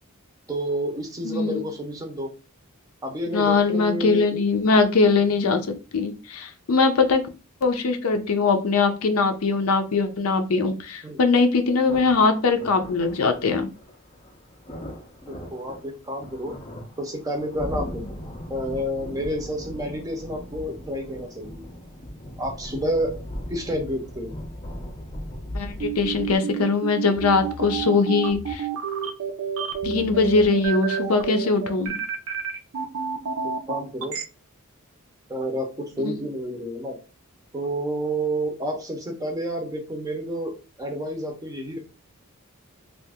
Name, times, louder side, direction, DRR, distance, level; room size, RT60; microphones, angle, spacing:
voice 1, 0.5-2.3 3.0-4.4 11.0-11.2 15.2-16.6 17.0-18.0 18.5-21.6 22.4-23.2 23.5-24.3 33.7-34.2 35.3-37.0 37.5-41.8, equal, 15° right, 4 dB, 0.6 m, -29 dB
voice 2, 1.2-1.6 3.3-7.3 7.6-13.7 25.5-28.7 29.8-32.0 36.0-36.2, left 4 dB, 75° left, 7 dB, 0.5 m, -21 dB
sound 1, 11.9-26.4, equal, 25° left, 0.5 m, -38 dB
sound 2, 25.8-34.2, right 7 dB, 70° right, 0.6 m, -29 dB
2.7 x 2.5 x 3.5 m, 0.33 s
head